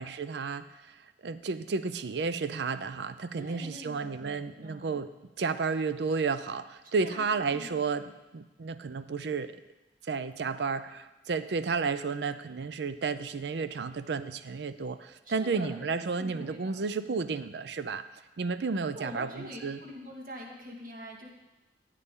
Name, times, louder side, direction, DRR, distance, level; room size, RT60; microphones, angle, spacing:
voice 1, 0.0-5.1 5.4-9.6 10.0-18.1 18.4-19.8, right 4 dB, 70° right, 13 dB, 0.5 m, -32 dB
voice 2, 3.4-5.0 6.8-7.8 15.2-16.9 18.9-21.3, equal, 50° right, 0 dB, 1.8 m, -45 dB
14.0 x 8.2 x 3.7 m, 1.1 s
head